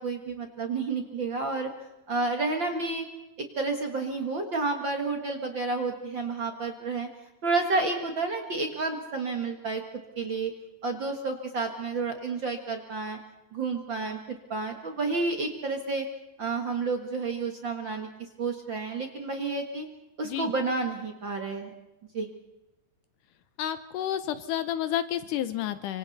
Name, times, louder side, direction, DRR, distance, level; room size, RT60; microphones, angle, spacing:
voice 1, 0.0-1.7 2.1-3.0 3.6-7.1 7.4-10.5 10.8-13.2 13.5-16.0 16.4-18.1 18.4-19.9 20.2-21.7 22.1-22.3, right 3 dB, 45° right, 4 dB, 1.7 m, -30 dB
voice 2, 23.6-26.0, left 11 dB, 75° left, 12 dB, 2.2 m, -30 dB
26.0 x 25.5 x 4.2 m, 0.97 s
omnidirectional pair, 4.0 m